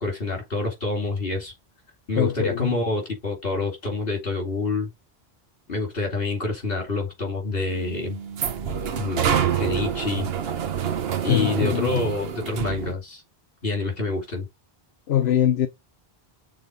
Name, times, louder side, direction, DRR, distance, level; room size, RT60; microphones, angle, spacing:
voice 1, 0.0-1.5 2.1-4.9 5.7-8.2 9.0-9.2 9.6-10.3 11.2-13.2 13.6-14.5, left 3 dB, 65° left, 3.0 m, -27 dB
voice 2, 2.2-2.8 11.3-12.0 15.1-15.7, left 11 dB, 85° left, 0.9 m, -22 dB
sound 1, 7.7-12.9, right 8 dB, 75° right, 1.0 m, -27 dB
6.4 x 3.9 x 5.1 m
omnidirectional pair, 1.0 m